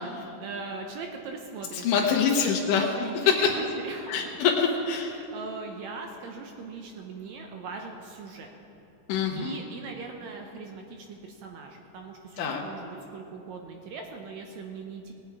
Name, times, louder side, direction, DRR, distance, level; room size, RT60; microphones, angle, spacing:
voice 1, 0.4-2.4 2.7-4.3 5.0-8.5 9.4-15.1, right 4 dB, 75° right, 3 dB, 1.9 m, -40 dB
voice 2, 1.7-2.8 4.1-5.2 9.1-9.6 12.4-12.6, left 6 dB, 85° left, 0 dB, 2.5 m, -26 dB
19.5 x 8.6 x 4.6 m, 2.8 s
omnidirectional pair, 3.7 m